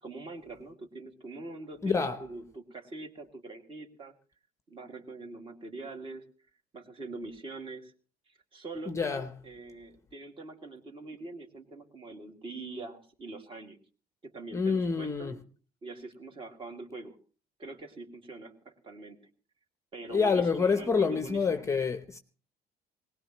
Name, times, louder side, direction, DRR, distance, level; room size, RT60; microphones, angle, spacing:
voice 1, 0.0-4.1 4.7-6.2 6.7-7.9 8.3-13.8 14.2-15.4 15.8-17.2 17.6-19.3 19.9-21.7, right 3 dB, 30° right, 2.3 m, -43 dB
voice 2, 1.8-2.2 8.9-9.3 14.5-15.3 20.1-22.2, left 5 dB, 15° left, 0.8 m, -27 dB
20.5 x 19.0 x 3.0 m
cardioid pair, 160°, 17 cm